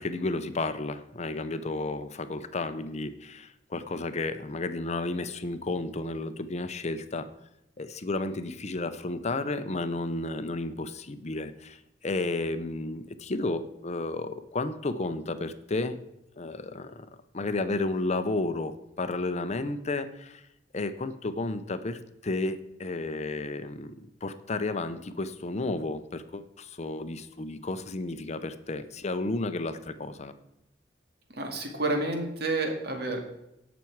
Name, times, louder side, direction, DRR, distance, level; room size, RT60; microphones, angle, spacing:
voice 1, 0.0-7.3 7.8-11.8 12.0-16.0 16.4-17.1 17.3-20.4 20.7-23.9 24.2-30.3, left 2 dB, 40° left, 10 dB, 0.7 m, -32 dB
voice 2, 31.3-33.2, right 2 dB, 65° right, 3 dB, 2.1 m, -29 dB
16.5 x 6.1 x 4.7 m, 0.86 s
head